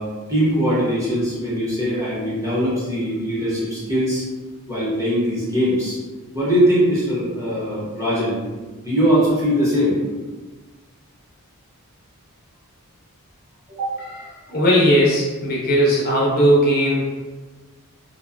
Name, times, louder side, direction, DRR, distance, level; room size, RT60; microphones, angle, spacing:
voice 1, 0.0-4.2 4.7-6.0 6.3-8.4 8.8-10.0 13.7-13.9, equal, 15° right, -9 dB, 0.8 m, -21 dB
voice 2, 14.0-17.0, equal, 45° left, -4 dB, 0.5 m, -18 dB
2.5 x 2.2 x 2.4 m, 1.3 s
head